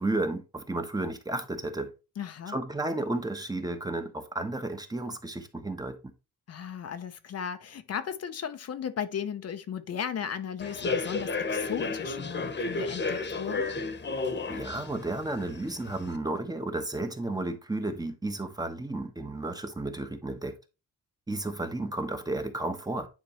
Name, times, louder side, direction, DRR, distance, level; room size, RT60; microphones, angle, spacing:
voice 1, 0.0-1.9 2.5-6.0 14.5-20.5 21.3-23.1, right 2 dB, 10° right, 1.0 m, -32 dB
voice 2, 2.2-2.6 6.5-13.7, left 8 dB, 55° left, 0.7 m, -36 dB
Human voice / Subway metro underground, 10.6-16.1, left 3 dB, 35° left, 1.1 m, -33 dB
9.5 x 4.5 x 3.0 m
cardioid pair, 125°, 30 cm